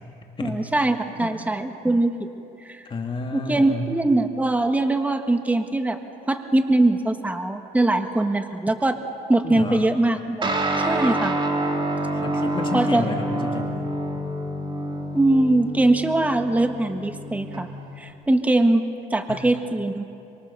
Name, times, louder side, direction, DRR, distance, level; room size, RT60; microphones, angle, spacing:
voice 1, 0.4-2.1 2.6-2.9 3.3-6.0 6.3-9.0 9.3-11.4 12.7-13.0 15.1-17.7 18.0-18.8 19.1-20.0, right 2 dB, 10° right, 6 dB, 1.4 m, -22 dB
voice 2, 2.9-3.9 9.4-9.8 12.1-13.8 19.3-19.5, left 3 dB, 30° left, 2 dB, 2.0 m, -30 dB
Guitar, 10.4-18.1, right 1 dB, 30° right, 3.0 m, -27 dB
26.5 x 25.0 x 6.9 m, 2.6 s
cardioid pair, 110°, 17 cm